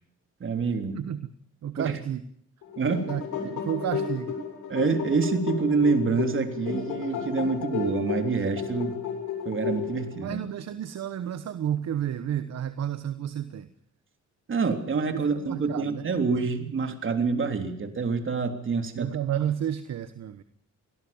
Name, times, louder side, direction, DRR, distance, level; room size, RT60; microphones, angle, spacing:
voice 1, 0.4-1.0 1.8-2.0 2.8-3.1 4.7-9.0 9.5-10.4 14.5-19.1, right 4 dB, 40° right, 6 dB, 3.5 m, -27 dB
voice 2, 0.9-1.3 1.6-2.2 3.1-4.4 10.2-13.7 15.1-16.0 18.9-20.4, right 10 dB, 60° right, 12 dB, 1.2 m, -31 dB
sound 1, 2.6-10.2, left 7 dB, 85° left, 7.3 m, -32 dB
24.0 x 17.5 x 7.3 m, 0.67 s
cardioid pair, 90°, 30 cm